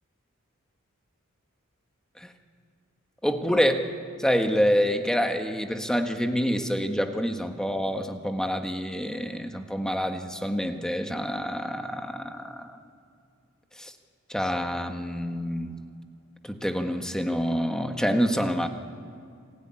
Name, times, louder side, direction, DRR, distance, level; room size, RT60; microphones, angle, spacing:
voice 1, 3.2-3.9 4.2-12.7 13.8-13.9 14.3-15.8 16.4-18.7, equal, 5° left, 5 dB, 1.5 m, -27 dB
27.5 x 16.5 x 10.0 m, 2.4 s
head